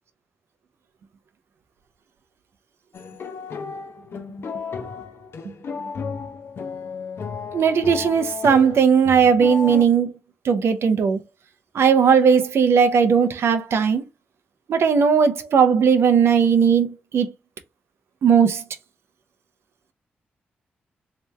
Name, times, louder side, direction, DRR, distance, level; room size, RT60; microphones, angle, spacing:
sound 1, 2.9-9.8, left 5 dB, 60° left, 0.7 m, -33 dB
voice 1, 7.5-10.1 10.4-11.2 11.7-14.0 14.7-17.3 18.2-18.6, right 6 dB, 70° right, 0.6 m, -17 dB
3.3 x 2.9 x 3.2 m
supercardioid pair, 45°, 4 cm